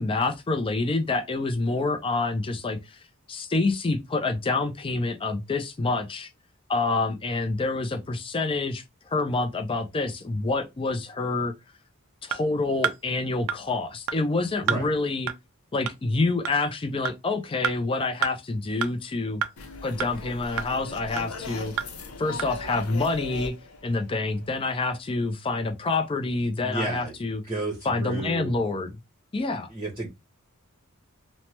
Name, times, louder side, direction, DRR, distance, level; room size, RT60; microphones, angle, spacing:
voice 1, 0.0-3.0 3.3-6.3 6.7-11.5 12.2-15.3 15.7-19.4 19.8-21.7 22.2-23.5 23.8-27.4 27.8-29.0 29.3-29.7, left 3 dB, 25° left, 0.4 m, -27 dB
sound 1, 12.3-12.4 12.8-13.0 13.5-13.6 14.1-14.2 14.7-14.8 15.3-15.4 15.9-16.0 16.5-16.6 17.1-17.2 17.6-17.8 18.2-18.3 18.8-18.9 19.4-19.5 20.0-20.1 20.6-20.7 21.2-21.3 21.8-21.9 22.4-22.5, right 8 dB, 65° right, 0.3 m, -27 dB
sound 2, 19.6-24.7, left 3 dB, 90° left, 0.7 m, -39 dB
voice 2, 26.6-27.1 27.5-28.5 29.7-30.1, right 2 dB, 20° right, 0.8 m, -31 dB
3.1 x 2.1 x 2.8 m
head